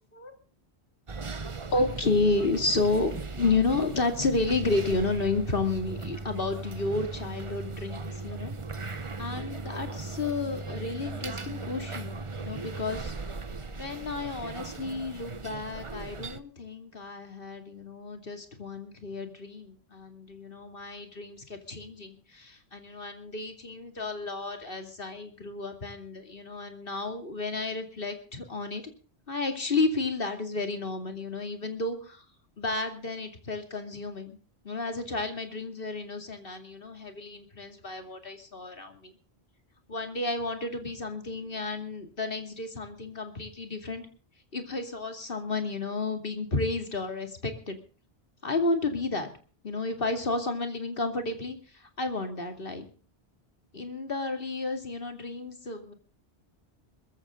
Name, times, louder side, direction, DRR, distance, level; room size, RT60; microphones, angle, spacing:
sound 1, 1.1-16.4, right 3 dB, 30° right, 0.9 m, -38 dB
voice 1, 1.7-13.1 13.8-28.8 29.3-32.2 32.6-34.4 34.6-39.1 39.9-44.1 44.5-47.8 48.4-49.3 49.6-52.9 53.7-55.9, left 3 dB, 55° left, 6 dB, 2.7 m, -32 dB
21.0 x 15.0 x 3.8 m, 0.38 s
omnidirectional pair, 1.1 m